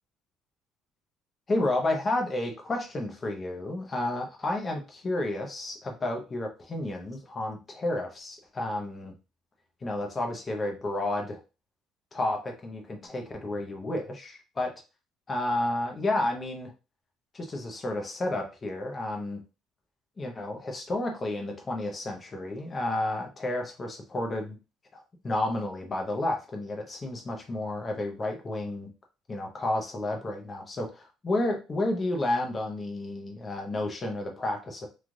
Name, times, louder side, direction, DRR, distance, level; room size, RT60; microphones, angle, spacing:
voice 1, 1.5-9.1 9.8-11.4 12.1-14.7 15.3-16.7 17.3-19.4 20.2-24.6 24.9-28.9 29.3-34.9, left 1 dB, 20° left, 2 dB, 0.5 m, -31 dB
3.1 x 2.3 x 2.5 m, 0.30 s
cardioid pair, 175°, 0 cm